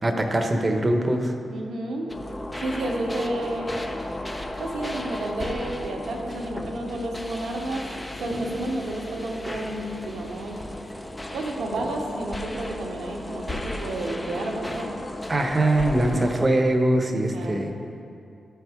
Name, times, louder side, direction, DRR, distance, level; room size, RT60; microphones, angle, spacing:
voice 1, 0.0-1.3 15.3-17.7, right 1 dB, 35° right, 4 dB, 1.0 m, -22 dB
voice 2, 1.5-2.1 2.6-3.8 4.6-7.9 8.2-10.6 11.3-15.0 17.0-17.6, right 1 dB, 80° right, 1 dB, 1.1 m, -31 dB
sound 1, 2.1-16.5, left 1 dB, 20° left, 0.9 m, -34 dB
13.0 x 4.6 x 3.6 m, 2.5 s
supercardioid pair, 40°, 0 cm